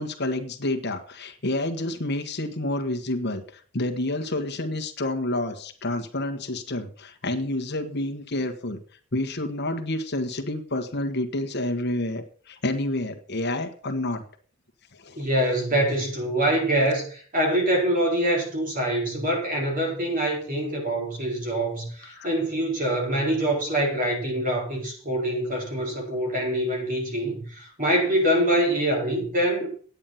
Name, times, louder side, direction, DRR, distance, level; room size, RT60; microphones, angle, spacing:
voice 1, 0.0-3.4 3.7-8.8 9.1-14.2 15.0-15.2 22.1-22.3, left 1 dB, 55° left, 1.4 m, -29 dB
voice 2, 15.2-29.7, right 1 dB, 40° right, 4.6 m, -25 dB
9.8 x 9.2 x 5.7 m
head